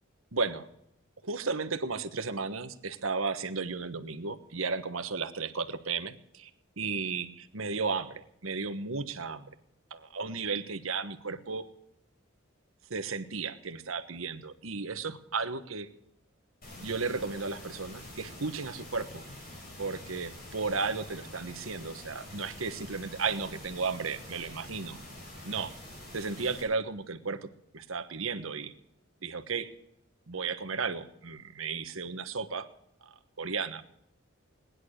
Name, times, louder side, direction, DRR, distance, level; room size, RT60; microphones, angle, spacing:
voice 1, 0.3-0.7 1.2-6.5 6.8-9.5 9.9-11.6 12.9-15.9 16.8-19.2 19.8-25.0 25.4-25.7 26.1-27.4 27.7-28.7 29.2-29.7 30.3-32.7 33.0-33.8, right 4 dB, 85° right, 10 dB, 1.3 m, -34 dB
sound 1, 16.6-26.6, left 1 dB, 45° left, 6.8 m, -46 dB
19.0 x 10.5 x 6.5 m, 0.78 s
head